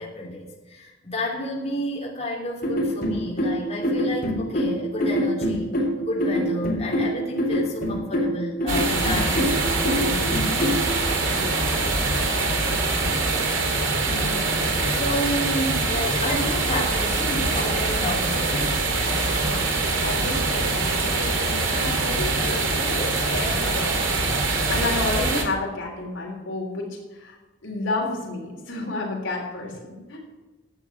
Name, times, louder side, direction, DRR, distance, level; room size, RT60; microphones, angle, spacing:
voice 1, 0.0-5.7 6.0-10.4 14.0-14.4 14.8-18.8 29.9-30.0, left 1 dB, 35° left, -3 dB, 3.0 m, -31 dB
sound 1, 2.6-10.9, equal, 50° left, 3.7 m, -25 dB
sound 2, 8.7-25.4, right 3 dB, 75° right, 2.5 m, -24 dB
voice 2, 11.2-12.3 19.3-23.9 24.7-27.4 27.6-29.8 30.1-30.2, left 2 dB, 70° left, -1 dB, 3.4 m, -31 dB
11.5 x 8.7 x 7.1 m, 1.2 s
head